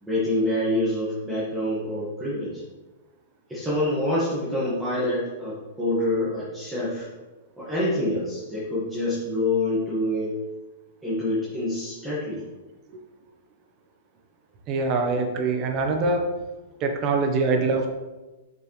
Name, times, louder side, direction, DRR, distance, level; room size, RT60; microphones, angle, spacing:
voice 1, 0.0-2.6 3.5-7.1 7.6-10.4 11.0-12.4, left 1 dB, 10° right, -10 dB, 2.0 m, -26 dB
voice 2, 14.7-16.3 16.8-17.9, right 3 dB, 35° right, 4 dB, 1.2 m, -23 dB
7.1 x 6.6 x 3.4 m, 1.2 s
hypercardioid pair, 150°, 0 cm